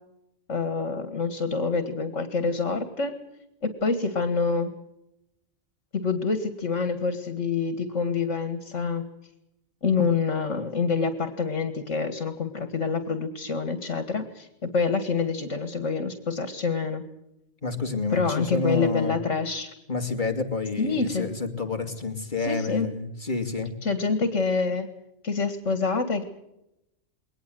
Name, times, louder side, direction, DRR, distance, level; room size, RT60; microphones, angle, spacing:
voice 1, 0.5-3.2 3.6-4.7 5.9-9.0 9.8-17.0 18.1-19.7 20.8-21.3 22.4-22.9 23.8-24.9 25.2-26.2, left 4 dB, 75° left, 10 dB, 2.3 m, -26 dB
voice 2, 17.6-19.2 19.9-23.7, left 3 dB, 40° left, 5 dB, 2.7 m, -29 dB
22.0 x 19.5 x 7.8 m, 0.86 s
omnidirectional pair, 1.3 m